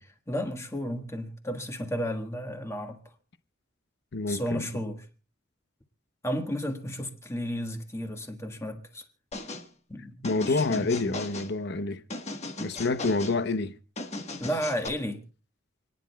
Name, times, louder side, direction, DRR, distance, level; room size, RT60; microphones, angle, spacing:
voice 1, 0.0-3.0 4.3-5.1 6.2-9.0 9.9-10.9 14.4-15.2, equal, 15° left, 1.4 m, -33 dB
voice 2, 4.1-4.7 10.2-12.0 12.6-13.7, left 3 dB, 55° left, 0.8 m, -28 dB
sound 1, 9.3-9.7 10.2-11.5 12.1-13.4 14.0-14.9, left 2 dB, 35° left, 1.3 m, -37 dB
29.5 x 10.0 x 2.3 m
head